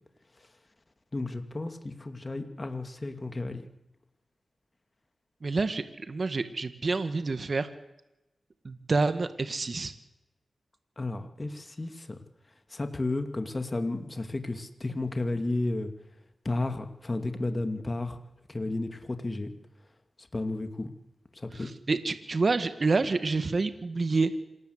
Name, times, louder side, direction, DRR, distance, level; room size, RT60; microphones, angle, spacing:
voice 1, 1.1-3.6 11.0-12.2 12.7-15.9 16.4-18.2 18.5-19.5 20.2-20.9 21.3-21.7, left 2 dB, 30° left, 7 dB, 2.6 m, -32 dB
voice 2, 5.4-7.7 8.6-9.9 21.5-24.3, right 3 dB, 50° right, 10 dB, 1.9 m, -28 dB
27.0 x 19.5 x 8.2 m, 0.92 s
cardioid pair, 65°, 0 cm